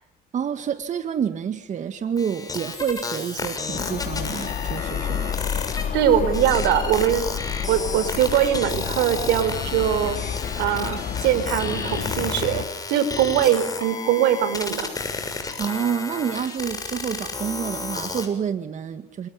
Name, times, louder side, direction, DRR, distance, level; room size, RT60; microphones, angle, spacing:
voice 1, 0.3-5.3 15.6-19.3, right 7 dB, 45° right, 1.9 m, -28 dB
sound 1, 2.2-18.3, left 3 dB, 20° left, 6.8 m, -32 dB
sound 2, 3.7-12.6, left 8 dB, 55° left, 2.9 m, -30 dB
voice 2, 5.9-7.3 7.7-10.2 10.6-14.9, right 10 dB, 90° right, 5.4 m, -22 dB
28.5 x 27.5 x 7.2 m
cardioid pair, 110°, 17 cm